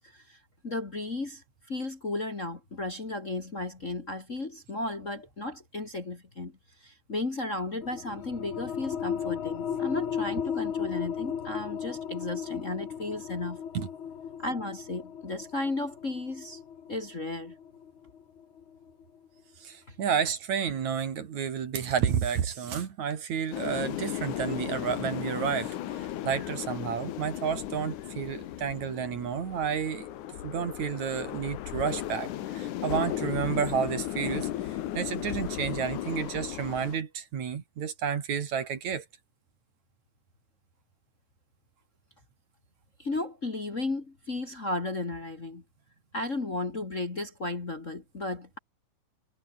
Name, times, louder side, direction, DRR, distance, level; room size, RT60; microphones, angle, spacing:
voice 1, 0.0-6.5 6.8-13.6 14.4-16.6 16.9-17.6 19.9-20.0 43.0-45.6 46.1-48.6, left 2 dB, 25° left, 2.1 m, -34 dB
sound 1, 7.8-19.0, left 8 dB, 45° left, 2.0 m, -35 dB
voice 2, 19.6-30.1 30.4-34.5 34.9-39.0, right 7 dB, 60° right, 3.4 m, -31 dB
sound 2, 23.5-37.0, left 13 dB, 70° left, 2.5 m, -35 dB
omnidirectional pair, 3.8 m